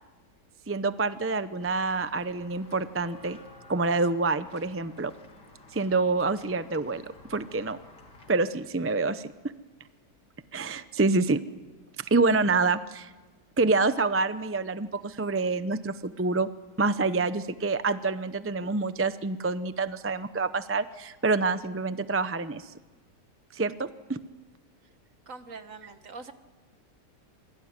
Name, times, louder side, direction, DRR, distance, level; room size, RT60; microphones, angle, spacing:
voice 1, 0.7-3.4 3.7-5.1 5.7-7.0 7.3-7.8 8.3-9.3 10.5-11.4 12.1-13.1 13.6-16.5 16.8-22.7 23.5-24.2, right 3 dB, 20° right, 12 dB, 0.3 m, -27 dB
Walk footsteps / Bell, 1.6-8.3, left 2 dB, 85° left, 3.7 m, -52 dB
voice 2, 25.3-26.3, right 4 dB, 50° right, 9 dB, 1.9 m, -43 dB
27.0 x 23.0 x 9.6 m, 1.2 s
omnidirectional pair, 1.8 m